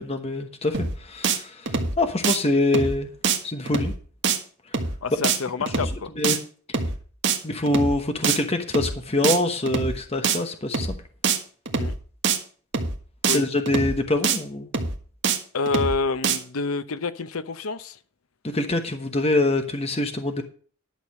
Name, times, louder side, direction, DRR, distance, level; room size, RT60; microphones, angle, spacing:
voice 1, 0.0-3.1 3.4-3.9 6.2-6.4 7.4-10.9 13.3-14.7 18.4-20.4, left 2 dB, 30° left, 1.1 m, -25 dB
sound 1, 0.7-1.0 1.2-1.4 1.7-2.0 2.2-2.4 2.7-3.0 3.2-3.4 3.7-4.0 4.2-4.4 4.7-5.0 5.2-5.4 5.7-6.0 6.2-6.4 6.7-7.0 7.2-7.4 7.7-8.0 8.2-8.4 8.7-9.0 9.2-9.4 9.7-10.0 10.2-10.4 10.7-11.0 11.2-11.4 11.7-12.0 12.2-12.4 12.7-13.0 13.2-13.4 13.7-14.0 14.2-14.4 14.7-15.0 15.2-15.4 15.7-16.0 16.2-16.4, right 5 dB, 55° right, 1.5 m, -24 dB
voice 2, 5.0-6.1 11.8-11.9 13.3-13.5 15.5-18.0, left 4 dB, 75° left, 0.7 m, -28 dB
11.5 x 6.6 x 6.4 m
head